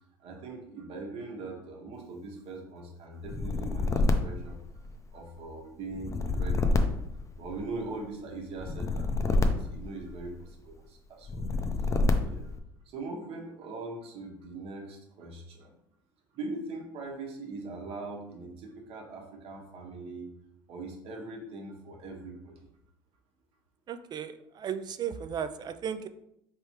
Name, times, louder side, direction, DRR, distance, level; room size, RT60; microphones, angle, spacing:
voice 1, 0.2-4.6 5.1-6.9 7.4-11.5 12.2-12.5 12.8-15.7 16.3-20.3 20.7-22.7, right 3 dB, 60° right, 1 dB, 1.2 m, -41 dB
sound 1, 3.2-5.2 5.9-7.9 8.6-10.5 11.2-12.6, left 3 dB, 25° left, 0.5 m, -28 dB
voice 2, 23.9-26.1, right 8 dB, 40° right, 10 dB, 0.4 m, -35 dB
4.4 x 3.4 x 2.9 m, 0.77 s
hypercardioid pair, 80°, 11 cm